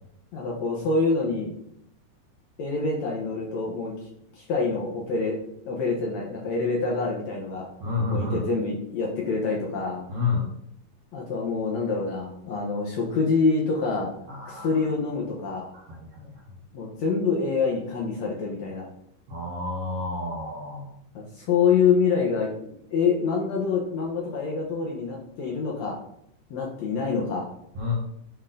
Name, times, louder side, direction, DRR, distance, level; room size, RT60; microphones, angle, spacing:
voice 1, 0.3-1.5 2.6-3.9 4.4-5.4 5.7-7.7 8.1-10.0 11.1-14.1 14.5-15.7 16.7-18.9 21.1-26.0 26.5-27.5, left 4 dB, 65° left, -1 dB, 2.0 m, -26 dB
voice 2, 7.8-8.4 10.1-10.5 14.3-14.8 15.9-16.3 19.3-20.9 27.7-27.9, left 3 dB, 60° right, -3 dB, 1.6 m, -29 dB
10.0 x 3.8 x 3.9 m, 0.71 s
omnidirectional pair, 4.2 m